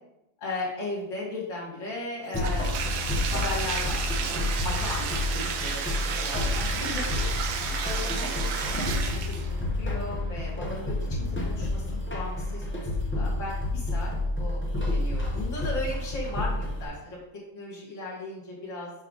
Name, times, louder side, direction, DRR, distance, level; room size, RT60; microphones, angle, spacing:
voice 1, 0.4-7.5 7.8-9.0 9.3-12.7 13.0-14.1 14.4-17.2 17.5-18.9, left 2 dB, 35° left, -5 dB, 2.3 m, -37 dB
sound 1, 2.3-16.8, left 2 dB, 15° left, 0.5 m, -30 dB
Bathtub (filling or washing), 2.3-9.6, right 6 dB, 75° right, 1.4 m, -32 dB
5.7 x 5.6 x 4.0 m, 0.88 s
omnidirectional pair, 2.2 m